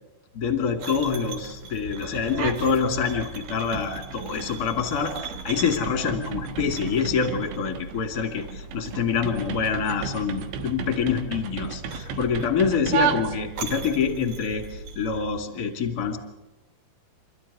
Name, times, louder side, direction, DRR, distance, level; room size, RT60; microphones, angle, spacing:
voice 1, 0.3-16.2, left 6 dB, 30° left, 6 dB, 1.9 m, -26 dB
sound 1, 0.8-15.2, right 3 dB, 50° right, 4.0 m, -40 dB
sound 2, 2.3-2.8 3.1-13.8, right 8 dB, 80° right, 3.6 m, -33 dB
28.5 x 13.5 x 9.8 m, 1.1 s
omnidirectional pair, 5.3 m